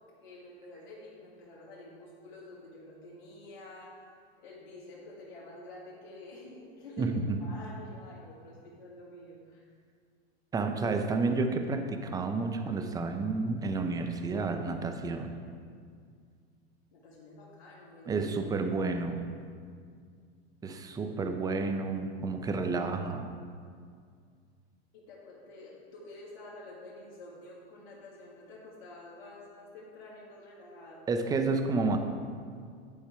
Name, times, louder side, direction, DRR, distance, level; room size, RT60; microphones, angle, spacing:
voice 1, 0.2-3.9 4.4-7.1 7.4-9.6 16.9-18.2 24.9-31.1, left 2 dB, 65° left, -6 dB, 1.9 m, -49 dB
voice 2, 7.0-7.4 10.5-15.3 18.1-19.2 20.6-23.3 31.1-32.0, right 3 dB, 10° right, 6 dB, 0.5 m, -30 dB
10.5 x 4.8 x 4.4 m, 2.1 s
hypercardioid pair, 115°, 32 cm